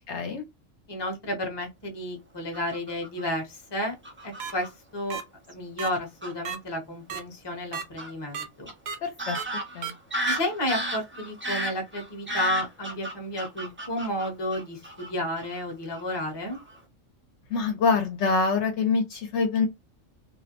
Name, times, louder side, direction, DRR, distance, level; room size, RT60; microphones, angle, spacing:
voice 1, 0.1-0.4 9.0-9.4 9.8-9.9 17.5-19.7, left 4 dB, 65° left, 0.9 m, -25 dB
voice 2, 0.9-3.9 4.2-5.2 5.5-8.7 10.2-16.6, left 1 dB, 25° left, 0.7 m, -32 dB
Fowl / Bird vocalization bird call bird song, 2.5-3.2 4.0-4.7 5.5-5.6 5.9-6.3 8.0-8.1 8.7-8.8 9.2-15.1 15.4-15.6 15.9-16.2 16.5-16.8, right 1 dB, 20° right, 0.3 m, -34 dB
sound 1, 4.4-4.5 5.1-5.2 5.8-5.9 6.5-6.6 7.1-7.2 7.7-7.8 8.3-8.5 8.9-9.0 9.4-9.5 9.8-9.9 10.3-10.4, right 8 dB, 65° right, 0.8 m, -32 dB
2.5 x 2.0 x 2.8 m
omnidirectional pair, 1.3 m